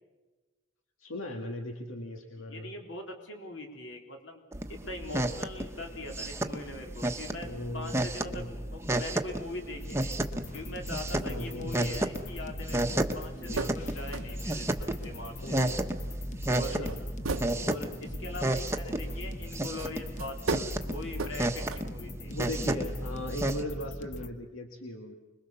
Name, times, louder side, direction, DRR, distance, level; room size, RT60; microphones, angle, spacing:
voice 1, 1.0-2.7 7.4-8.5 11.2-12.0 13.3-13.7 15.4-15.8 16.5-17.0 17.4-17.7 22.3-25.1, left 1 dB, 85° left, 3 dB, 1.9 m, -38 dB
voice 2, 2.4-4.4 4.7-7.5 7.7-10.2 10.5-12.8 13.1-15.6 16.5-16.9 17.6-22.4, left 2 dB, 65° left, 3 dB, 3.8 m, -42 dB
sound 1, 4.5-23.6, right 1 dB, 15° right, 1.0 m, -33 dB
sound 2, 9.8-24.3, left 1 dB, 35° left, 1.2 m, -41 dB
sound 3, 13.6-13.8 14.1-15.4 15.6-15.7 16.5-16.6 16.9-18.5 19.8-19.9 20.2-20.7 21.1-21.4 21.7-21.8, right 3 dB, 90° right, 1.0 m, -35 dB
26.0 x 21.5 x 6.9 m, 1.2 s
head